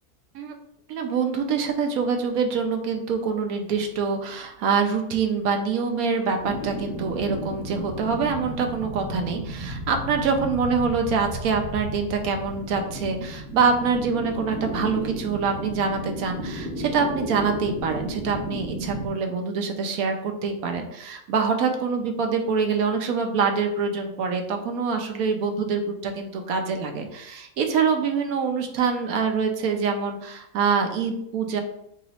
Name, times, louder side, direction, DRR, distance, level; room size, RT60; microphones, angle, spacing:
voice 1, 0.9-31.6, right 5 dB, 70° right, 5 dB, 1.0 m, -25 dB
sound 1, 6.4-19.1, equal, ahead, 0.5 m, -34 dB
3.1 x 2.9 x 4.1 m, 0.77 s
omnidirectional pair, 1.6 m